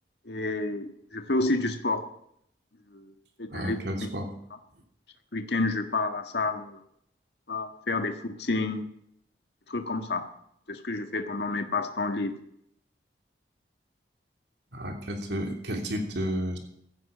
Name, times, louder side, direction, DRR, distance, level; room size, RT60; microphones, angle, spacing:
voice 1, 0.3-2.0 2.9-3.1 3.4-3.8 5.3-6.8 7.5-8.8 9.7-10.2 10.7-12.3, left 2 dB, 80° left, 6 dB, 1.6 m, -29 dB
voice 2, 3.5-4.3 14.7-16.6, equal, 85° right, 3 dB, 3.0 m, -32 dB
17.0 x 14.5 x 5.1 m, 0.72 s
head